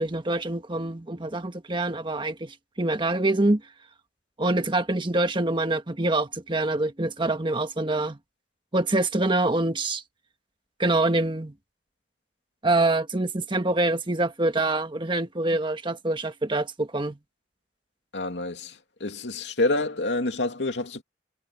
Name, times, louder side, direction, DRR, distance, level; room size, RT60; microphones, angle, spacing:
voice 1, 0.0-3.6 4.4-8.2 8.7-10.0 10.8-11.5 12.6-17.2, right 2 dB, 30° right, 1.4 m, -25 dB
voice 2, 18.1-21.0, left 2 dB, 90° left, 2.7 m, -28 dB
head